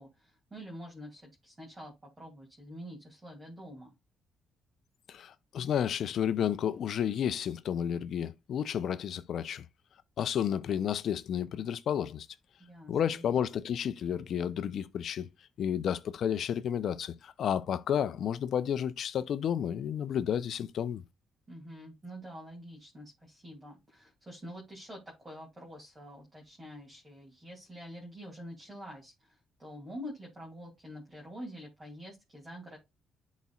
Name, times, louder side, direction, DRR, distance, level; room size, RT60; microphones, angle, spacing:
voice 1, 0.0-3.9 12.6-13.2 21.5-32.8, equal, 20° right, 2.6 m, -47 dB
voice 2, 5.1-9.6 10.2-12.3 12.9-15.3 15.6-21.0, left 9 dB, 65° left, 0.6 m, -31 dB
10.5 x 4.2 x 2.4 m
cardioid pair, 90°, 0 cm